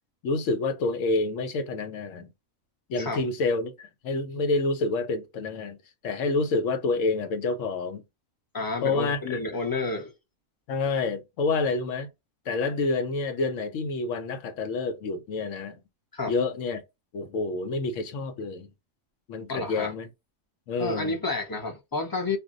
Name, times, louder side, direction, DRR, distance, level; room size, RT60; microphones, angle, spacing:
voice 1, 0.2-2.3 2.9-5.8 6.0-8.0 8.8-9.4 10.7-12.1 12.5-15.8 16.3-16.8 17.1-18.7 19.3-20.1 20.7-21.2, left 3 dB, 70° left, 1.0 m, -28 dB
voice 2, 8.5-10.1 16.1-16.3 19.5-19.9 20.8-22.4, left 3 dB, 25° left, 0.4 m, -30 dB
2.6 x 2.1 x 3.6 m
omnidirectional pair, 1.4 m